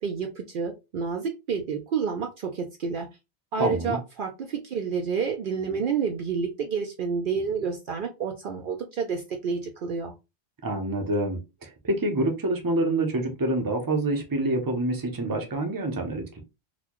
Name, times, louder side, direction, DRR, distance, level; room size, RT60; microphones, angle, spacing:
voice 1, 0.0-3.1 3.5-10.1, right 5 dB, 60° right, 0.7 m, -29 dB
voice 2, 3.6-4.0 10.6-16.4, right 2 dB, 25° right, 0.7 m, -27 dB
4.0 x 2.3 x 2.9 m
omnidirectional pair, 1.0 m